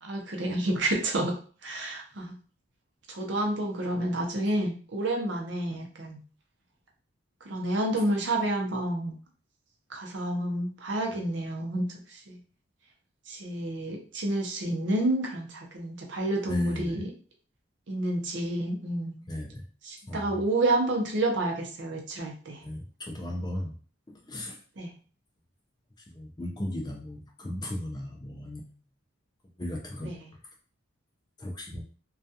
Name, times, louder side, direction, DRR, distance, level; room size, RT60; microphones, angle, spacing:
voice 1, 0.0-1.3 1.6-2.3 3.1-6.2 7.4-9.2 9.9-12.4 13.3-17.1 17.9-19.2 19.8-22.6 24.8-24.9 30.0-30.3, right 1 dB, 60° right, 1 dB, 0.6 m, -29 dB
voice 2, 16.5-17.0 19.3-19.6 20.1-20.3 22.6-23.7 24.1-24.6 26.1-28.7 29.6-30.1 31.4-31.8, left 1 dB, 20° left, 1 dB, 0.4 m, -36 dB
2.3 x 2.3 x 2.7 m, 0.41 s
head